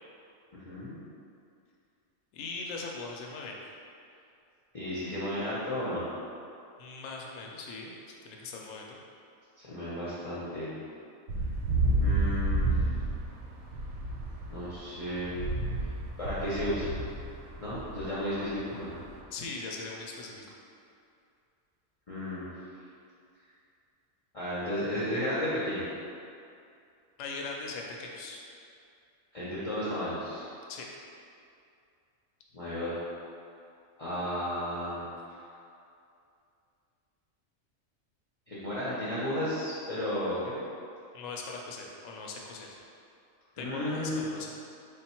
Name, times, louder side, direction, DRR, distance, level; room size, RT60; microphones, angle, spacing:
voice 1, 0.7-1.0 4.7-6.1 9.6-10.8 12.0-12.8 14.5-15.4 16.2-17.0 17.6-18.9 22.1-22.5 24.3-25.9 29.3-30.5 32.5-32.9 34.0-35.1 38.5-40.5 43.5-44.3, equal, 35° left, -11 dB, 0.6 m, -33 dB
voice 2, 2.3-3.6 6.8-9.0 19.3-20.6 27.2-28.4 30.7-30.9 41.1-42.8 43.6-44.6, left 3 dB, 70° left, -1 dB, 0.9 m, -40 dB
sound 1, 11.3-19.2, right 2 dB, 65° right, 0.8 m, -31 dB
3.4 x 2.3 x 4.3 m, 2.5 s
omnidirectional pair, 1.4 m